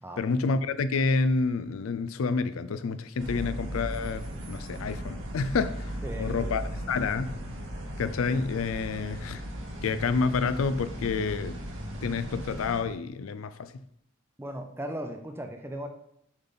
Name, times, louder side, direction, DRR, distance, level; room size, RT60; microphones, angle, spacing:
voice 1, 0.2-5.9 6.2-6.6 6.9-7.4 8.0-9.4 9.8-11.6 12.0-13.7, left 4 dB, 75° left, 0.4 m, -28 dB
sound 1, 3.2-12.8, equal, 70° right, 1.4 m, -37 dB
voice 2, 6.0-6.6 14.4-15.9, right 1 dB, 10° right, 0.7 m, -37 dB
7.0 x 4.0 x 5.6 m
head